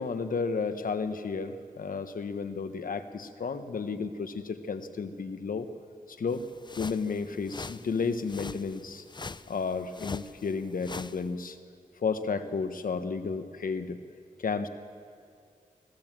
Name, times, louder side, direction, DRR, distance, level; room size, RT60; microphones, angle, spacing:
voice 1, 0.0-5.7 6.1-6.5 6.8-9.0 9.5-11.6 12.0-14.0 14.4-14.7, left 5 dB, 70° left, 9 dB, 1.4 m, -32 dB
sound 1, 6.3-11.2, left 3 dB, 30° left, 0.6 m, -43 dB
25.0 x 16.0 x 7.6 m, 2.4 s
cardioid pair, 60°, 15 cm